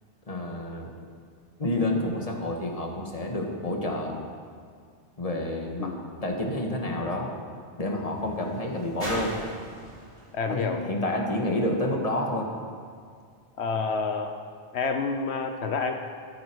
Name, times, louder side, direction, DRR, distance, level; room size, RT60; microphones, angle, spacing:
voice 1, 0.3-0.9 1.6-4.1 5.2-6.0 6.2-7.3 7.8-9.3 10.5-12.5, left 1 dB, 35° left, 1 dB, 1.8 m, -29 dB
sound 1, 7.3-12.0 12.8-12.9, equal, 75° right, 5.2 m, -42 dB
voice 2, 10.3-10.8 13.6-14.3 14.7-15.9, left 4 dB, 80° left, 5 dB, 1.1 m, -28 dB
14.5 x 13.5 x 4.7 m, 2.1 s
omnidirectional pair, 1.1 m